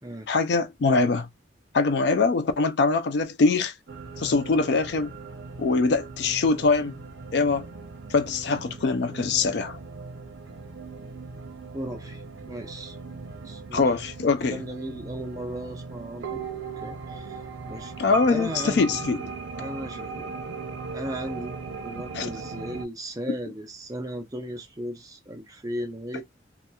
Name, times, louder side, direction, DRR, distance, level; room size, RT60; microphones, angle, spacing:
voice 1, 0.3-1.3 1.7-3.7 4.2-5.1 5.6-7.0 7.3-7.7 8.1-9.8 13.7-14.6 18.0-19.3 22.1-22.3, left 4 dB, 60° left, 0.3 m, -23 dB
sound 1, 3.9-22.8, right 4 dB, 85° right, 0.6 m, -38 dB
voice 2, 11.7-13.0 13.4-13.8 14.4-16.5 16.8-17.4 17.7-17.9 18.3-19.0 19.6-20.3 20.9-21.6 21.8-26.2, right 1 dB, 20° right, 0.5 m, -36 dB
2.8 x 2.3 x 2.2 m
head